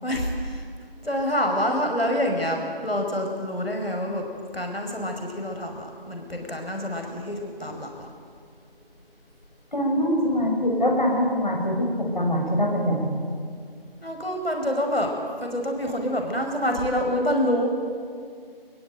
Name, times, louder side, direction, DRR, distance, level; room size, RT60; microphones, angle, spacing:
voice 1, 0.0-0.7 1.0-4.3 4.5-8.1 14.0-15.1 15.4-17.7, equal, 85° left, 2 dB, 5.5 m, -27 dB
voice 2, 9.7-13.2, equal, 50° left, 0 dB, 5.5 m, -23 dB
22.5 x 22.0 x 9.2 m, 2.2 s
figure-of-eight pair, 175°, 30 cm